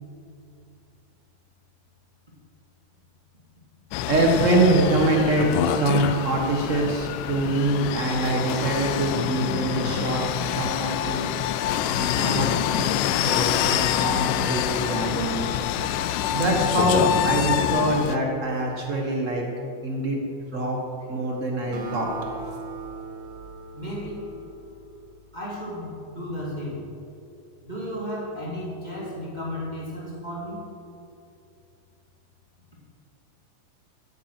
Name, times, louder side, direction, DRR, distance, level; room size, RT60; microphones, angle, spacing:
sound 1, 3.9-18.2, left 11 dB, 85° left, 2.1 m, -26 dB
voice 1, 4.1-11.2 11.9-12.9 13.2-15.5 16.3-19.4 19.8-20.2 20.5-20.8 21.1-22.1, right 2 dB, 40° right, 0 dB, 1.1 m, -24 dB
Acoustic guitar, 21.7-25.3, right 3 dB, 60° right, 2.5 m, -39 dB
voice 2, 23.7-24.3 25.3-26.8 27.6-30.7, equal, 15° right, -5 dB, 2.1 m, -34 dB
13.0 x 9.7 x 6.0 m, 2.5 s
omnidirectional pair, 3.7 m